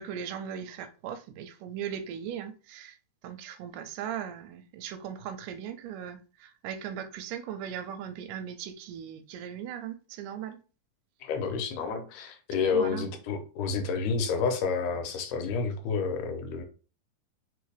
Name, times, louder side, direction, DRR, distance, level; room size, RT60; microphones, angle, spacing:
voice 1, 0.0-3.0 3.2-10.6 12.7-13.1, right 9 dB, 90° right, 2.2 m, -38 dB
voice 2, 11.2-16.6, left 5 dB, 80° left, 2.2 m, -29 dB
4.5 x 3.5 x 3.3 m
omnidirectional pair, 3.7 m